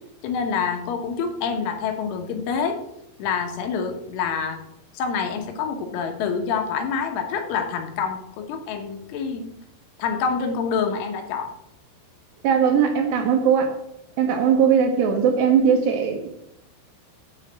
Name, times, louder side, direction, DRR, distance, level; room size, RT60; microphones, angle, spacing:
voice 1, 0.2-2.8 3.2-4.6 4.9-9.5 10.0-11.5, left 6 dB, 75° left, 4 dB, 3.6 m, -27 dB
voice 2, 12.4-13.7 14.2-16.3, right 7 dB, 75° right, 3 dB, 2.7 m, -19 dB
8.5 x 5.7 x 7.9 m, 0.80 s
omnidirectional pair, 5.7 m